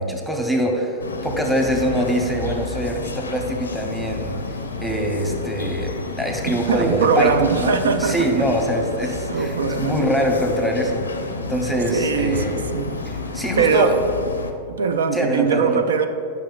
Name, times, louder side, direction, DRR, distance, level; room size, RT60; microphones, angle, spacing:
voice 1, 0.0-11.0 11.5-12.6 13.1-13.9 15.1-15.8, equal, ahead, 1 dB, 0.9 m, -24 dB
sound 1, 1.0-14.5, left 3 dB, 85° left, 0.5 m, -30 dB
voice 2, 6.7-8.9 9.3-10.1 11.9-12.9 13.6-14.0 14.7-16.1, right 5 dB, 75° right, 8 dB, 0.5 m, -21 dB
10.0 x 5.7 x 2.4 m, 2.4 s
figure-of-eight pair, 95°, 0 cm